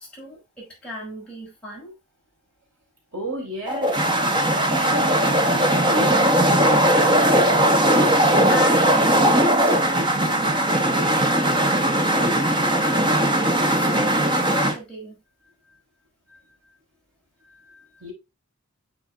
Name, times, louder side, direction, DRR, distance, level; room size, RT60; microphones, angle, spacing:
voice 1, 0.0-2.0 8.5-15.2, equal, 5° left, 5.1 m, -38 dB
voice 2, 3.1-4.0 4.5-7.4 7.9-8.0 10.0-10.1 16.3-16.4 17.7-18.1, right 1 dB, 65° right, 4.4 m, -32 dB
sound 1, 3.7-14.8, right 1 dB, 20° right, 1.0 m, -19 dB
9.8 x 6.6 x 2.3 m
head